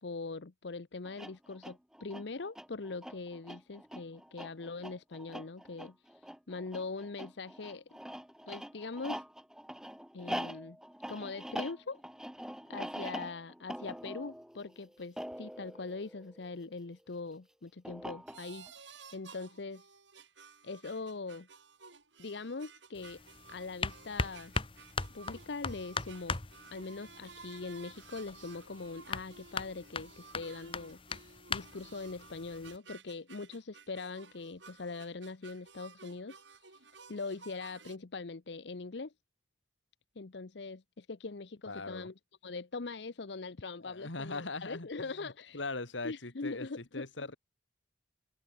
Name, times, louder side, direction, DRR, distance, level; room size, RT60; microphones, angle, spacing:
voice 1, 0.0-7.8 8.5-9.2 10.1-10.8 11.1-12.0 12.7-19.9 20.6-21.5 22.2-23.2 23.5-24.5 25.1-26.4 26.7-39.1 40.2-42.1 42.4-45.6 46.0-47.1, left 3 dB, 70° left, 0.8 m, -42 dB
sound 1, 1.0-16.8 17.8-18.7, equal, 5° right, 1.1 m, -44 dB
sound 2, 18.3-38.0, right 5 dB, 80° right, 5.4 m, -55 dB
sound 3, 22.9-32.8, left 4 dB, 30° left, 1.5 m, -40 dB
voice 2, 41.7-42.1 43.8-47.4, left 3 dB, 90° left, 2.6 m, -41 dB
head